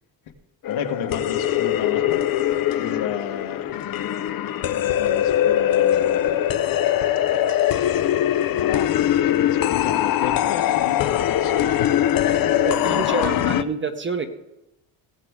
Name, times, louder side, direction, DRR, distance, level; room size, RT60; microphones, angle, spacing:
sound 1, 0.6-13.6, left 11 dB, 45° left, 0.6 m, -21 dB
voice 1, 0.7-2.3 2.8-3.8 4.8-6.6 8.5-11.9 12.5-13.2, left 8 dB, 70° left, 4 dB, 1.5 m, -33 dB
voice 2, 12.6-14.3, right 4 dB, 25° right, 7 dB, 1.0 m, -27 dB
17.5 x 7.7 x 3.6 m, 0.92 s
cardioid pair, 95°, 48 cm